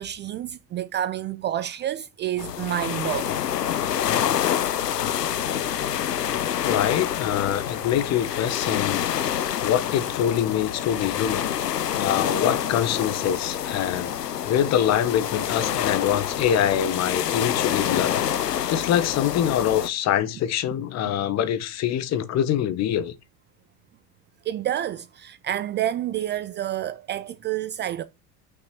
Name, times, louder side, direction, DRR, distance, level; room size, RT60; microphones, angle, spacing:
voice 1, 0.0-3.4 24.4-28.0, right 12 dB, 25° right, 0.5 m, -29 dB
sound 1, 2.4-19.9, left 10 dB, 80° left, 0.8 m, -27 dB
voice 2, 6.6-9.0 9.6-11.5 11.9-14.1 14.4-18.3 18.7-23.1, left 10 dB, 35° left, 1.1 m, -24 dB
6.2 x 5.9 x 6.2 m
figure-of-eight pair, 80°, 48 cm